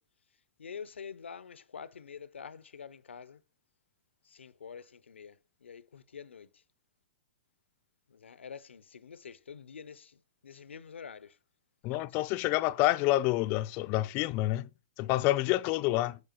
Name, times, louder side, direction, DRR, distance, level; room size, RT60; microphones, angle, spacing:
voice 1, 0.6-3.4 4.4-5.3 5.6-5.8 6.1-6.5 8.2-9.9 10.4-11.2, left 6 dB, 90° left, 0.5 m, -46 dB
voice 2, 11.8-14.7 15.0-16.2, left 16 dB, 35° left, 0.4 m, -28 dB
9.6 x 4.7 x 3.0 m
hypercardioid pair, 130°, 6 cm